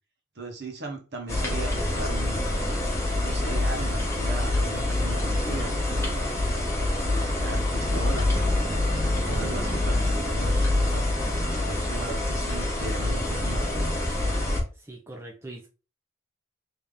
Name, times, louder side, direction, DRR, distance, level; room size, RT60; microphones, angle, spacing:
voice 1, 0.3-2.5 3.2-6.2 7.0-11.0 11.6-13.9, right 2 dB, 55° right, 1.0 m, -37 dB
sound 1, 1.3-14.6, left 1 dB, 15° left, 1.0 m, -26 dB
voice 2, 14.7-15.7, right 2 dB, 15° right, 0.5 m, -42 dB
3.4 x 2.8 x 3.6 m
head